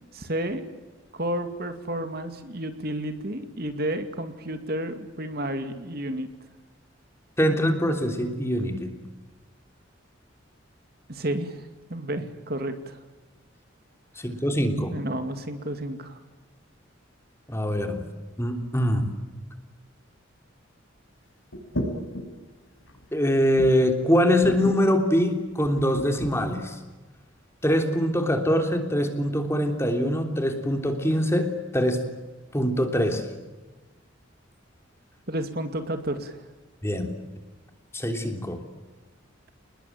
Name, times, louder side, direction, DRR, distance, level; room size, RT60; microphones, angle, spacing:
voice 1, 0.1-0.7 1.1-6.3 11.1-11.6 11.9-13.0 14.9-16.2 35.3-36.4, right 1 dB, 50° right, 8 dB, 2.4 m, -31 dB
voice 2, 7.4-8.9 14.2-14.9 17.5-18.0 18.4-19.0 23.1-26.8 27.6-32.0 32.5-33.2 36.8-37.1 37.9-38.6, equal, 15° left, 5 dB, 3.2 m, -23 dB
sound 1, 21.5-22.4 22.8-23.0 23.6-24.0 24.4-24.8 25.6-26.3, equal, 80° left, 6.0 m, -32 dB
29.5 x 21.0 x 9.0 m, 1.2 s
head